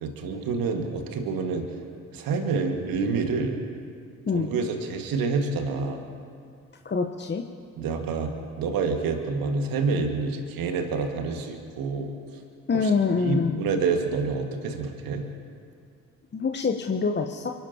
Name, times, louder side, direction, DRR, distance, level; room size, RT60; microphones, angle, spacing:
voice 1, 0.0-1.6 2.1-3.6 4.3-6.0 7.8-12.1 12.7-12.9 13.2-15.2, right 4 dB, 55° right, 4 dB, 2.0 m, -28 dB
voice 2, 6.8-7.4 12.7-13.6 16.3-17.5, left 5 dB, 25° left, 4 dB, 1.1 m, -25 dB
29.5 x 12.0 x 3.0 m, 2.3 s
figure-of-eight pair, 40°, 41 cm